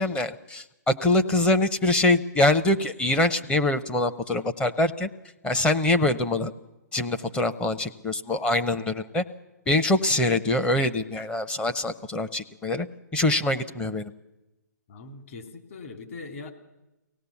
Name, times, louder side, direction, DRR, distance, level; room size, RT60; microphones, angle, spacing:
voice 1, 0.0-5.1 5.4-6.5 6.9-9.2 9.7-12.9 13.1-14.1, left 2 dB, 10° left, 8 dB, 0.7 m, -24 dB
voice 2, 14.9-16.5, left 3 dB, 45° left, 5 dB, 2.6 m, -41 dB
24.0 x 17.5 x 7.1 m, 0.99 s
hypercardioid pair, 145°, 10 cm